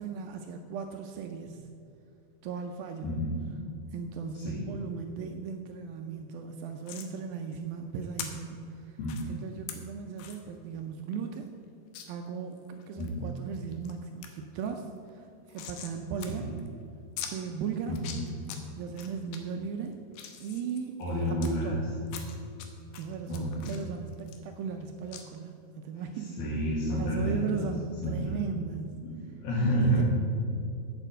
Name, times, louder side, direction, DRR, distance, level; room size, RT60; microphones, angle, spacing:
voice 1, 0.0-1.6 2.4-3.2 3.9-9.0 9.3-11.5 12.1-14.9 15.1-16.5 17.3-18.0 18.8-20.0 20.4-21.8 23.0-26.4 26.9-28.9 29.8-30.0, right 6 dB, 85° right, 5 dB, 2.1 m, -37 dB
voice 2, 3.0-3.4 4.3-4.7 9.0-9.3 13.0-13.3 16.3-16.5 17.9-18.2 21.0-21.8 23.3-23.7 26.4-27.7 28.0-28.4 29.0-30.0, equal, 70° left, -6 dB, 3.5 m, -30 dB
sound 1, 6.9-7.1 8.2-8.3 9.0-9.2 9.7-9.8 10.2-10.4 10.8-10.9 11.1-11.2 11.9-12.1 12.6-13.1 13.6-13.9 14.2-14.3 14.6-16.3 16.6-16.7 17.2-17.3 17.9-18.6 19.0-19.4 19.9-21.5 22.1-22.7 22.9-24.8 25.1-25.2, left 9 dB, 85° left, 3.1 m, -42 dB
8.5 x 7.5 x 7.7 m, 2.6 s
omnidirectional pair, 4.7 m